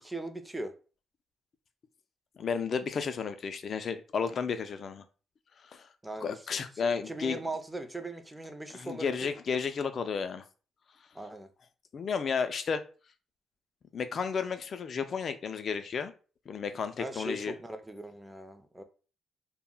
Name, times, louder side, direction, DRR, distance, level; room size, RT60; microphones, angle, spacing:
voice 1, 0.0-0.7 6.0-9.3 11.1-11.5 17.0-18.8, right 2 dB, 10° right, 0.4 m, -39 dB
voice 2, 2.4-5.0 5.7-5.9 6.2-7.4 8.7-10.4 11.9-12.8 13.9-16.1 16.5-17.5, left 6 dB, 50° left, 0.3 m, -32 dB
2.1 x 2.0 x 3.7 m
cardioid pair, 90°, 0 cm